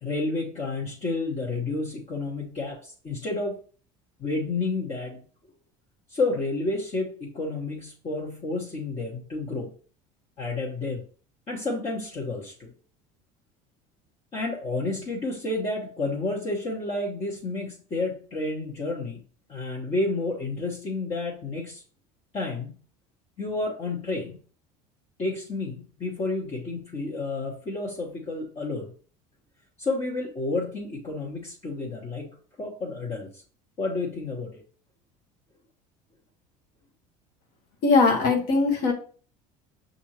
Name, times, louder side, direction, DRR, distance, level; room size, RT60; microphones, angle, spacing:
voice 1, 0.0-3.6 4.2-5.2 6.1-9.7 10.4-11.0 11.5-12.7 14.3-19.2 19.5-21.8 22.3-22.8 23.4-24.4 25.2-28.9 29.8-33.4 33.8-34.6, left 2 dB, 35° left, -5 dB, 1.4 m, -30 dB
voice 2, 37.8-38.9, left 4 dB, 65° left, 2 dB, 1.3 m, -20 dB
6.0 x 2.7 x 3.0 m, 0.40 s
supercardioid pair, 95°, 17 cm